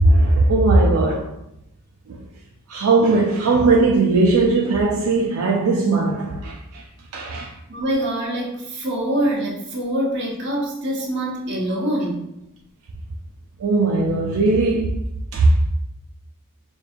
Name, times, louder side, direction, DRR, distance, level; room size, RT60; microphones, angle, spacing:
voice 1, 0.0-1.3 2.7-6.5 7.1-7.5 13.6-15.0 15.3-15.5, right 3 dB, 75° right, 0.5 m, -18 dB
voice 2, 7.7-12.2, right 1 dB, 55° right, 1.0 m, -24 dB
4.9 x 2.6 x 2.5 m
head